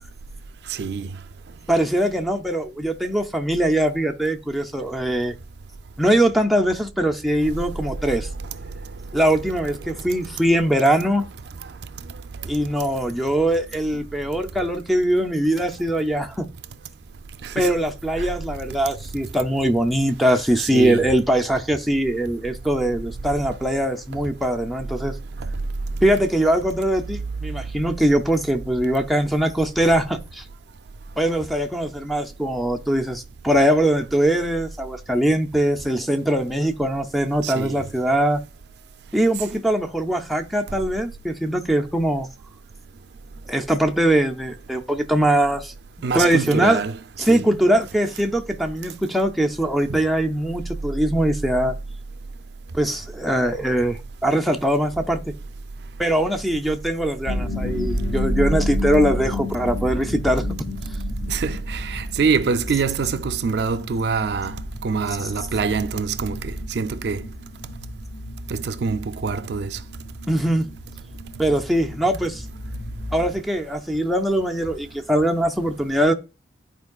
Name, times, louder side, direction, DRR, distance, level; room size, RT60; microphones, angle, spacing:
voice 1, 0.7-1.1 8.5-8.7 17.4-17.8 18.2-18.3 20.6-21.0 25.4-25.5 37.4-37.8 46.0-47.4 49.9-50.0 61.3-67.3 68.5-69.8, right 5 dB, 65° right, 0.4 m, -25 dB
voice 2, 1.7-5.3 6.0-8.3 9.1-11.2 12.5-16.5 17.6-25.1 26.0-30.4 31.2-38.4 39.1-42.3 43.5-45.7 46.1-46.8 47.2-51.7 52.7-55.3 56.0-60.4 70.3-70.7 71.4-72.4 73.1-76.1, right 1 dB, ahead, 0.5 m, -21 dB
sound 1, 57.3-73.4, left 2 dB, 50° left, 1.6 m, -32 dB
12.0 x 4.5 x 2.3 m
head